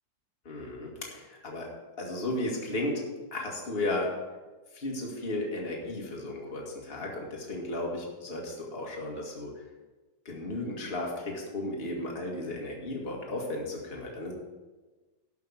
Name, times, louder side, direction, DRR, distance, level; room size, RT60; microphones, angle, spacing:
voice 1, 0.5-1.7 2.0-3.0 3.3-4.1 4.7-9.5 10.3-14.3, left 1 dB, 30° left, -1 dB, 2.1 m, -34 dB
12.5 x 5.8 x 7.0 m, 1.2 s
omnidirectional pair, 2.0 m